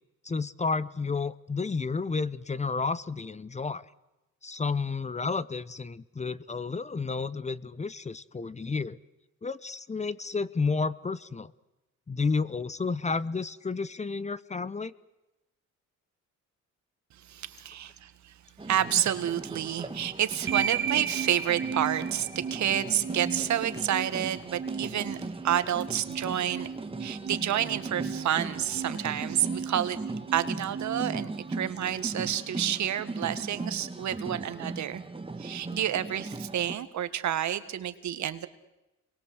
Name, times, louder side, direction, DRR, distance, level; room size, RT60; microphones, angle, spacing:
voice 1, 0.2-3.9 4.4-9.0 9.4-11.5 12.1-14.9, left 4 dB, 25° left, 18 dB, 0.9 m, -31 dB
voice 2, 17.3-18.3 18.6-26.7 27.0-30.0 30.3-35.0 35.4-38.5, right 11 dB, 70° right, 12 dB, 1.8 m, -29 dB
sound 1, 18.6-36.8, right 3 dB, 20° right, 2.1 m, -39 dB
sound 2, 20.5-32.5, right 7 dB, 40° right, 1.5 m, -36 dB
29.0 x 22.5 x 8.0 m, 1.0 s
cardioid pair, 90°, 30 cm